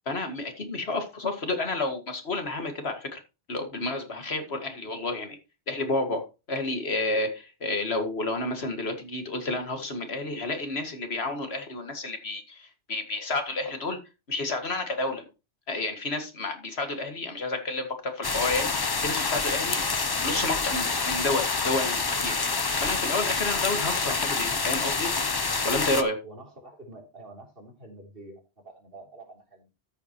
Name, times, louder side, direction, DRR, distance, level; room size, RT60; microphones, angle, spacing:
voice 1, 0.1-3.2 3.5-5.4 5.7-14.0 14.3-15.2 15.7-19.8 20.2-22.3 22.8-25.1 25.6-26.2, left 2 dB, 70° left, 2.2 m, -30 dB
sound 1, 18.2-26.0, left 4 dB, 30° left, 0.5 m, -27 dB
voice 2, 26.2-29.7, right 2 dB, 60° right, 3.5 m, -47 dB
13.0 x 7.1 x 3.0 m
omnidirectional pair, 1.1 m